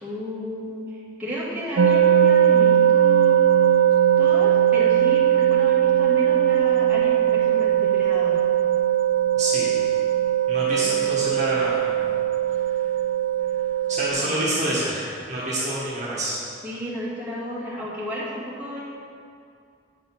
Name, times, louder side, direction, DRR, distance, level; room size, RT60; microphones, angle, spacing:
voice 1, 0.0-3.8 4.2-8.4 10.8-11.1 14.2-14.6 16.6-18.8, equal, 10° right, -9 dB, 2.5 m, -33 dB
sound 1, 1.8-14.1, right 10 dB, 85° right, 0.5 m, -19 dB
voice 2, 9.3-9.7 10.5-12.1 13.9-16.4, right 1 dB, 40° right, -7 dB, 1.5 m, -27 dB
9.3 x 5.3 x 6.0 m, 2.4 s
head